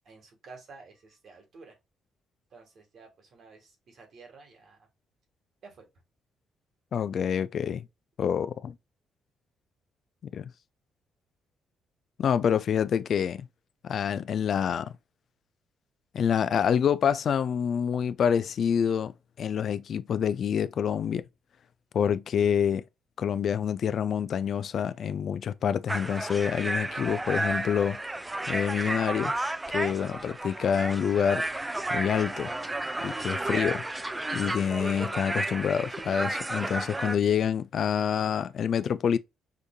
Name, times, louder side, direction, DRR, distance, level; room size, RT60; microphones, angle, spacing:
voice 1, 0.0-1.7 2.5-4.8 5.6-5.8 29.8-30.3 33.2-33.5, right 4 dB, 60° right, 1.6 m, -51 dB
voice 2, 6.9-7.9 8.2-8.7 10.2-10.5 12.2-13.5 13.8-14.9 16.1-21.2 21.9-22.8 23.2-28.0 28.5-29.3 29.7-31.4 31.9-32.5 33.0-33.8 34.3-39.2, left 8 dB, 60° left, 0.3 m, -27 dB
sound 1, 25.9-37.2, right 2 dB, 15° right, 0.4 m, -32 dB
5.1 x 2.7 x 2.2 m
cardioid pair, 90°, 0 cm